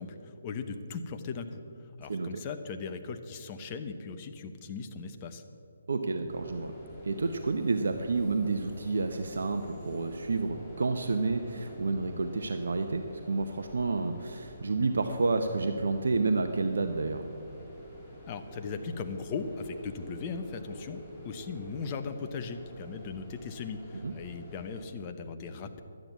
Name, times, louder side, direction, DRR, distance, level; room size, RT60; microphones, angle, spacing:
voice 1, 0.0-1.6 2.0-5.4 18.3-25.8, left 5 dB, 30° left, 7 dB, 0.9 m, -38 dB
voice 2, 5.9-6.7 7.0-17.3 24.0-24.1, right 3 dB, 65° right, 7 dB, 0.8 m, -30 dB
sound 1, 6.3-24.9, equal, 15° left, 3.0 m, -47 dB
12.0 x 9.0 x 8.1 m, 2.7 s
figure-of-eight pair, 140°, 0 cm